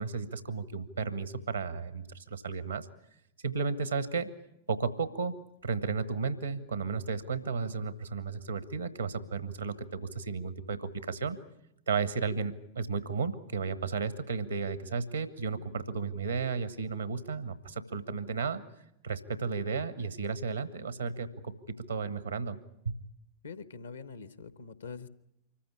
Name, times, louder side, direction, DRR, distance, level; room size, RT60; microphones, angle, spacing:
voice 1, 0.0-2.9 3.4-4.3 4.7-5.3 5.6-11.4 11.9-18.6 19.0-22.6, right 5 dB, 80° right, 15 dB, 1.1 m, -33 dB
voice 2, 23.4-25.1, left 4 dB, 70° left, 15 dB, 1.0 m, -44 dB
25.0 x 14.5 x 9.8 m, 0.82 s
figure-of-eight pair, 90°, 0 cm